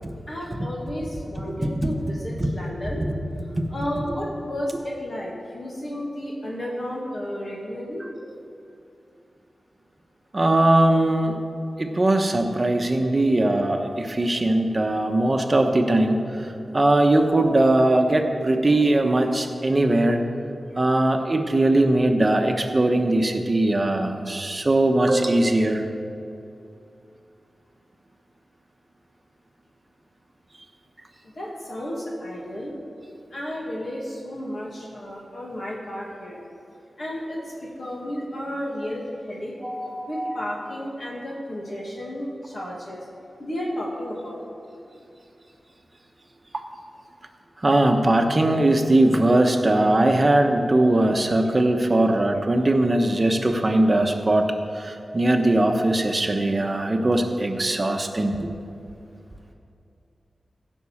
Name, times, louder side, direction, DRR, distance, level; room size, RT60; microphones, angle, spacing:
voice 1, 0.3-3.1 3.7-8.0 31.2-32.8 33.3-36.4 37.0-39.5 40.1-43.0 43.4-44.4, equal, 50° left, -4 dB, 2.1 m, -32 dB
voice 2, 1.6-1.9 2.4-2.5 10.3-11.4 11.8-16.2 16.7-20.2 20.8-25.8 39.6-40.1 47.6-58.5, right 1 dB, 30° right, 4 dB, 1.1 m, -20 dB
15.5 x 5.4 x 7.2 m, 2.6 s
wide cardioid pair, 95°, 0 cm